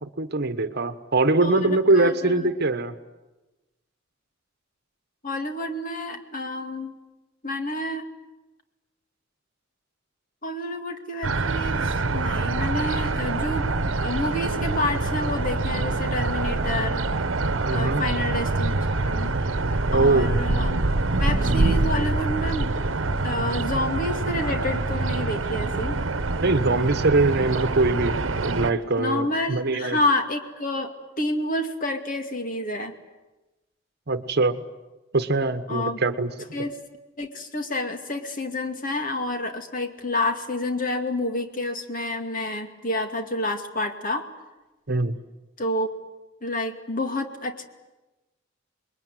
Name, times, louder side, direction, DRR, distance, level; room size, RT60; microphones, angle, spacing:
voice 1, 0.0-3.0 17.7-18.0 19.8-20.4 21.4-21.7 26.4-30.0 34.1-34.6 35.1-36.6 44.9-45.2, right 2 dB, 55° right, 11 dB, 1.2 m, -23 dB
voice 2, 1.4-2.5 5.2-6.9 7.4-8.1 10.4-13.7 14.0-17.1 17.6-19.5 19.9-20.8 21.2-22.7 23.2-26.0 29.0-32.9 35.7-36.0 36.5-36.8 37.2-44.3 45.6-45.9 46.4-47.6, left 1 dB, 45° left, 5 dB, 2.4 m, -29 dB
sound 1, 11.2-28.7, right 2 dB, 75° right, 1.1 m, -25 dB
27.5 x 21.5 x 9.3 m, 1.1 s
head